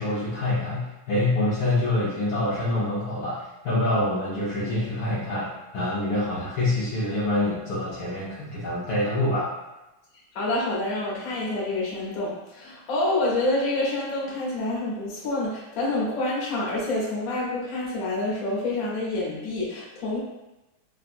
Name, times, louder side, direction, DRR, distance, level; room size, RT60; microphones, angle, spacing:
voice 1, 0.0-9.5, left 1 dB, 75° left, -8 dB, 0.9 m, -26 dB
voice 2, 10.3-20.2, left 2 dB, 55° left, -6 dB, 1.1 m, -27 dB
3.6 x 2.1 x 2.5 m, 1.0 s
omnidirectional pair, 2.3 m